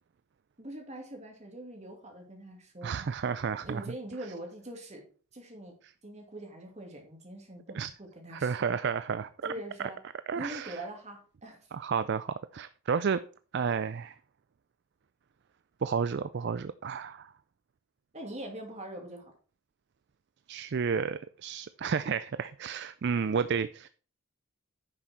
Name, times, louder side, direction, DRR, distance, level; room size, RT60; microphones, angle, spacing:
voice 1, 0.6-3.3 3.6-5.0 5.3-8.8 9.4-10.0 10.3-11.7 18.1-19.3, right 1 dB, 30° right, 1 dB, 2.6 m, -43 dB
voice 2, 2.8-3.8 7.7-7.9 8.4-9.3 9.8-9.9 10.3-10.7 11.7-13.2 13.5-14.2 15.8-17.3 20.5-23.9, right 6 dB, 50° right, 13 dB, 0.4 m, -31 dB
10.0 x 6.2 x 4.5 m, 0.40 s
head